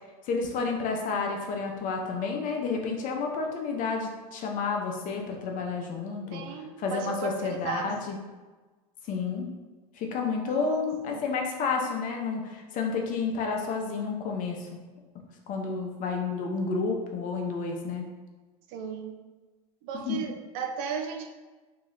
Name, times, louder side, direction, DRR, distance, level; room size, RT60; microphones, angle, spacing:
voice 1, 0.2-8.2 9.1-9.5 9.9-14.7 15.5-18.1 20.0-20.2, left 4 dB, 45° left, 1 dB, 0.8 m, -30 dB
voice 2, 6.3-7.9 10.5-11.2 18.7-19.1 19.8-21.3, right 7 dB, 60° right, 5 dB, 0.6 m, -36 dB
3.0 x 2.9 x 3.9 m, 1.2 s
hypercardioid pair, 85°, 20 cm